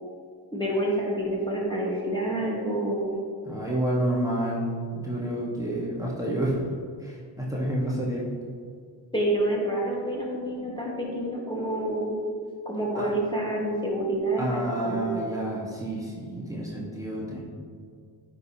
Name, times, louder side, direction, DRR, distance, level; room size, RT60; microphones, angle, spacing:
voice 1, 0.5-3.2 9.1-12.1 12.7-15.2, right 1 dB, 10° left, -4 dB, 1.7 m, -28 dB
voice 2, 3.4-6.6 7.0-8.3 12.9-13.1 14.4-17.4, right 1 dB, 5° right, -5 dB, 1.6 m, -29 dB
9.1 x 5.2 x 3.0 m, 2.1 s
supercardioid pair, 60°, 46 cm